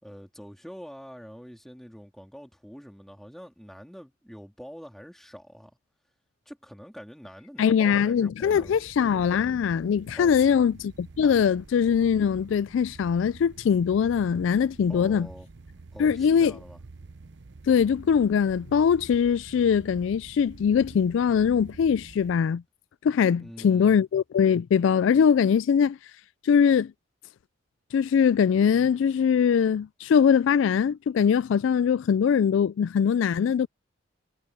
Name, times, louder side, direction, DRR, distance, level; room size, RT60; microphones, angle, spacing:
voice 1, 0.0-5.8 6.5-8.8 10.1-10.7 14.9-15.5 15.9-16.8 23.4-24.0, equal, ahead, 3.6 m, -45 dB
voice 2, 7.6-10.7 11.2-15.3 16.0-16.5 17.7-22.6 23.0-26.0 26.4-26.9 27.9-33.7, left 7 dB, 75° left, 0.3 m, -22 dB
sound 1, 8.4-22.4, right 3 dB, 60° right, 0.7 m, -47 dB
head